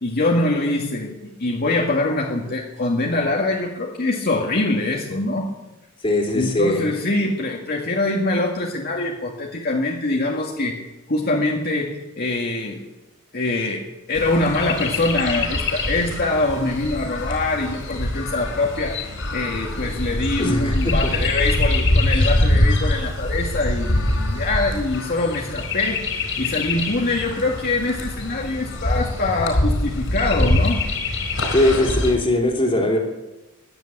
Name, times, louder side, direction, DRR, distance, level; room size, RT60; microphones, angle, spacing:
voice 1, 0.0-5.5 6.3-12.8 13.3-13.8 14.1-26.0 26.4-30.8, left 2 dB, 50° left, -1 dB, 1.8 m, -24 dB
voice 2, 6.0-6.9 20.4-21.3 22.1-22.3 31.5-33.0, left 1 dB, 25° left, 2 dB, 3.0 m, -20 dB
Chirp tweet, 14.1-32.2, left 1 dB, 70° left, 4.4 m, -24 dB
14.5 x 10.5 x 9.0 m, 1.1 s
head